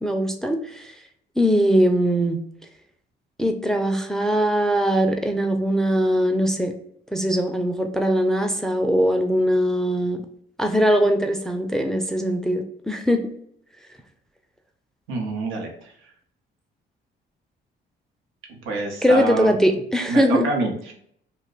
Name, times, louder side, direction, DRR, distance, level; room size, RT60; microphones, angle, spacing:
voice 1, 0.0-0.9 1.4-2.4 3.4-6.7 7.1-10.3 10.6-13.3 19.0-20.5, equal, 5° left, 5 dB, 0.4 m, -21 dB
voice 2, 15.1-15.7 18.7-19.5 20.1-20.9, right 2 dB, 85° right, 1 dB, 0.8 m, -26 dB
2.7 x 2.2 x 3.8 m, 0.66 s
cardioid pair, 90°, 20 cm